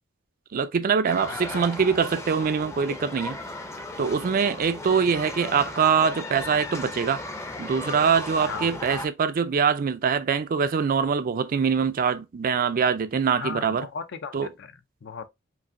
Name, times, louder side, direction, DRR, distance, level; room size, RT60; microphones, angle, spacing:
voice 1, 0.5-3.4 4.0-7.2 7.6-13.9 14.3-14.5, right 6 dB, 45° right, 0.4 m, -23 dB
sound 1, 1.0-9.1, left 2 dB, 15° left, 0.6 m, -36 dB
voice 2, 1.3-1.6 4.0-4.3 8.4-8.8 13.3-15.3, left 6 dB, 60° left, 0.5 m, -37 dB
5.1 x 2.6 x 2.5 m
head